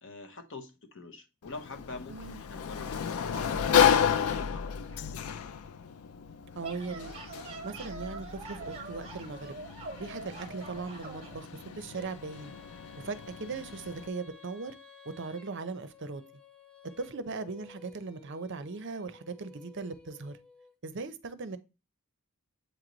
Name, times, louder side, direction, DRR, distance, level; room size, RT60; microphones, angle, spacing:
voice 1, 0.0-5.4 13.4-13.6, left 3 dB, 60° left, 0.9 m, -45 dB
Sliding door, 1.4-14.1, left 8 dB, 80° left, 0.4 m, -32 dB
voice 2, 2.1-2.4 6.6-7.1 7.6-9.6 10.0-12.5 13.0-14.7 15.2-16.2 17.0-20.4 20.8-21.6, right 4 dB, 55° right, 0.6 m, -39 dB
sound 1, 6.4-11.4, right 4 dB, 25° right, 1.2 m, -44 dB
Female singing, 11.9-20.7, left 5 dB, 5° left, 0.8 m, -54 dB
8.0 x 3.1 x 3.9 m
head